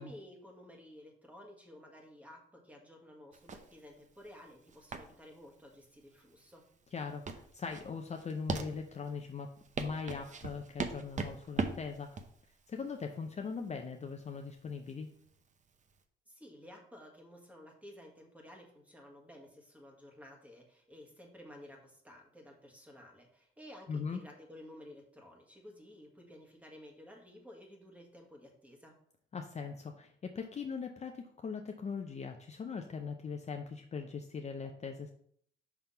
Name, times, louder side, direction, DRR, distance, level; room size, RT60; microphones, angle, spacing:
voice 1, 0.0-6.7 16.3-29.0, left 1 dB, 5° right, 0 dB, 1.7 m, -54 dB
sound 1, 3.3-16.0, right 4 dB, 40° right, 0.7 m, -41 dB
voice 2, 6.9-9.5 9.8-12.2 12.7-15.1 23.9-24.2 29.3-35.1, left 5 dB, 35° left, 4 dB, 0.6 m, -40 dB
6.0 x 3.5 x 5.6 m, 0.65 s
cardioid pair, 90°, 20 cm